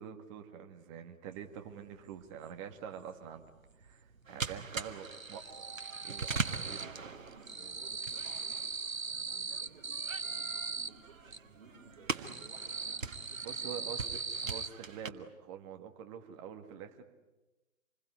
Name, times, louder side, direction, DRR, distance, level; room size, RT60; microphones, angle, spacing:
voice 1, 0.0-3.4 3.8-5.5 5.7-6.4 6.7-6.9 12.1-12.4 13.4-17.0, right 8 dB, 25° right, 6 dB, 2.0 m, -46 dB
sound 1, 1.4-1.5 1.8-3.1 3.4-4.1 4.3-7.0 7.3-11.4 11.9-14.7, right 4 dB, 90° right, 1.3 m, -40 dB
sound 2, 4.3-15.1, right 4 dB, 70° right, 1.8 m, -42 dB
Keyboard (musical), 5.4-8.1, right 11 dB, 65° left, 3.7 m, -58 dB
voice 2, 6.2-8.7 9.0-13.9, right 5 dB, 40° right, 0 dB, 4.2 m, -57 dB
27.5 x 21.5 x 9.7 m, 1.1 s
figure-of-eight pair, 140°, 40 cm